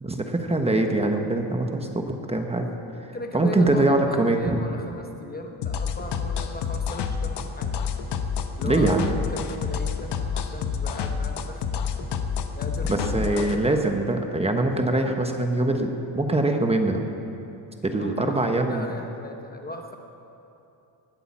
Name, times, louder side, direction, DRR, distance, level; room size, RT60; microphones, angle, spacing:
voice 1, 0.0-2.7 3.0-4.6 8.6-9.2 12.9-17.0 17.8-18.9, right 2 dB, 15° right, 4 dB, 1.1 m, -23 dB
voice 2, 3.1-7.7 8.6-11.6 12.6-14.0 17.9-20.0, left 1 dB, 20° left, 3 dB, 1.0 m, -37 dB
sound 1, 5.6-13.6, left 6 dB, 60° left, 1.2 m, -28 dB
19.5 x 8.7 x 7.3 m, 2.8 s
cardioid pair, 135°, 46 cm